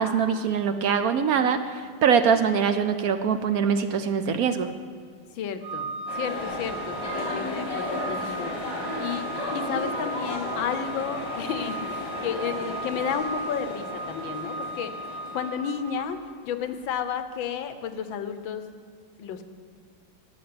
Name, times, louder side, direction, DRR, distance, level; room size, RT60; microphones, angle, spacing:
voice 1, 0.0-4.7, right 6 dB, 65° right, 9 dB, 0.9 m, -23 dB
voice 2, 5.3-8.5 8.9-14.9 15.3-16.2 16.4-18.6 19.2-19.4, left 7 dB, 85° left, 10 dB, 1.6 m, -32 dB
Organ, 5.6-16.4, right 2 dB, 35° right, 1.3 m, -36 dB
sound 1, 6.1-15.9, left 1 dB, 60° left, 4.5 m, -34 dB
13.5 x 7.3 x 9.5 m, 2.1 s
omnidirectional pair, 2.1 m